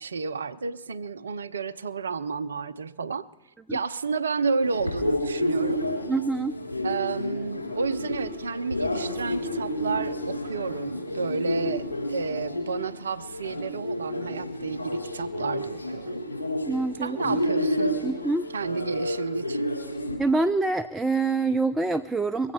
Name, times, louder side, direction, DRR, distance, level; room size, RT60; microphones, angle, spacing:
voice 1, 0.0-3.3 3.7-5.8 6.8-16.2 17.0-18.0 18.5-19.7, right 4 dB, 80° right, 13 dB, 0.4 m, -31 dB
sound 1, 4.6-20.1, left 1 dB, 85° left, 4.3 m, -30 dB
voice 2, 6.1-6.6 16.7-17.4 18.0-18.4 20.2-22.5, right 3 dB, 10° right, 7 dB, 0.6 m, -26 dB
24.0 x 8.0 x 4.3 m, 0.95 s
figure-of-eight pair, 85°, 0 cm